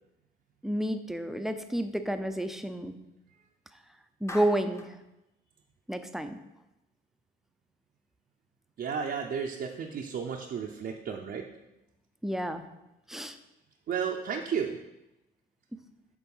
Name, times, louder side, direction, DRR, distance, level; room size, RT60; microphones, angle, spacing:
voice 1, 0.6-3.0 4.2-4.9 5.9-6.4 12.2-12.6 13.1-13.4, right 1 dB, ahead, 8 dB, 0.5 m, -30 dB
Clapping, 4.3-5.0, left 2 dB, 15° left, 0.9 m, -42 dB
voice 2, 8.8-11.5 13.9-14.8, right 7 dB, 55° right, 1 dB, 0.6 m, -33 dB
7.1 x 3.8 x 5.4 m, 0.93 s
cardioid pair, 90°, 20 cm